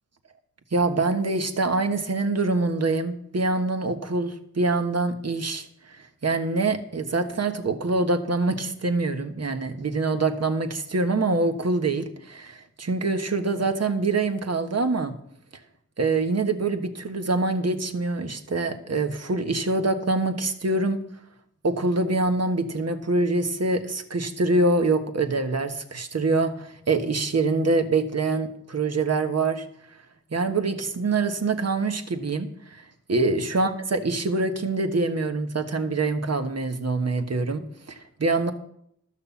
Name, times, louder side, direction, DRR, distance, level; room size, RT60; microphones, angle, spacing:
voice 1, 0.7-15.1 16.0-21.0 21.6-29.6 30.3-32.8 33.1-38.5, right 3 dB, 55° right, 6 dB, 1.4 m, -25 dB
13.0 x 6.5 x 7.2 m, 0.71 s
cardioid pair, 55°, 30 cm